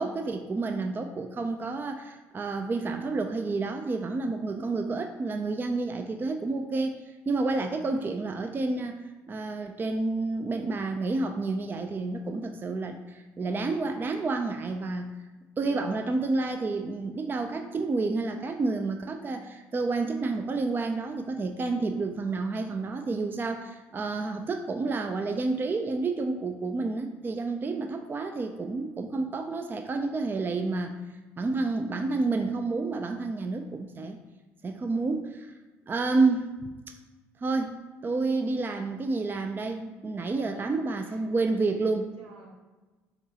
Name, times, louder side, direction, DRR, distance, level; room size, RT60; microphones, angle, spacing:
voice 1, 0.0-15.1 15.6-30.9 31.4-34.2 34.6-35.5 35.9-36.5 37.4-37.7 38.0-42.1, right 3 dB, 30° right, 5 dB, 0.4 m, -29 dB
voice 2, 15.6-16.1 40.5-41.2 42.2-42.5, right 2 dB, 80° right, -3 dB, 1.4 m, -48 dB
5.8 x 3.1 x 2.8 m, 1.2 s
hypercardioid pair, 65°, 7 cm